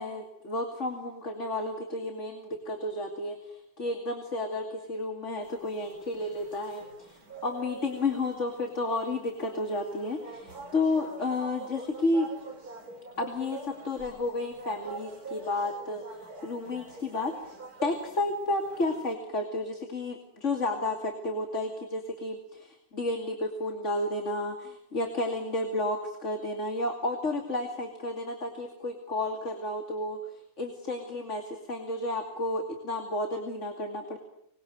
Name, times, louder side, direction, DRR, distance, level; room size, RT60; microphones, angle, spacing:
voice 1, 0.0-7.1 7.4-12.3 13.2-17.3 17.8-30.2 30.6-34.2, left 2 dB, 40° left, 5 dB, 2.8 m, -32 dB
sound 1, 5.4-19.1, right 3 dB, 55° right, 4.1 m, -45 dB
25.5 x 21.5 x 9.4 m, 0.75 s
omnidirectional pair, 2.0 m